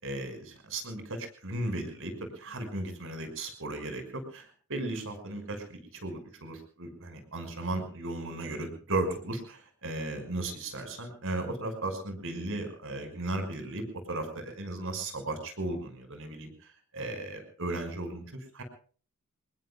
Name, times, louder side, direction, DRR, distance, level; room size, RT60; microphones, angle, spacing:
voice 1, 0.0-18.6, right 2 dB, 65° right, 7 dB, 5.9 m, -36 dB
28.0 x 20.5 x 2.4 m, 0.43 s
head